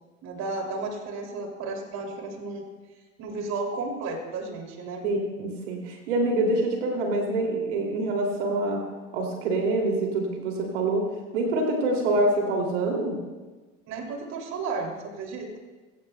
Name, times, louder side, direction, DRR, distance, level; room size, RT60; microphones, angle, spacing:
voice 1, 0.2-2.6 3.2-5.0 13.9-15.6, right 3 dB, 45° right, 2 dB, 2.8 m, -33 dB
voice 2, 5.0-8.9 9.1-11.1 11.3-13.2, right 2 dB, 65° right, 1 dB, 2.8 m, -26 dB
22.0 x 17.0 x 2.3 m, 1.3 s
hypercardioid pair, 80°, 38 cm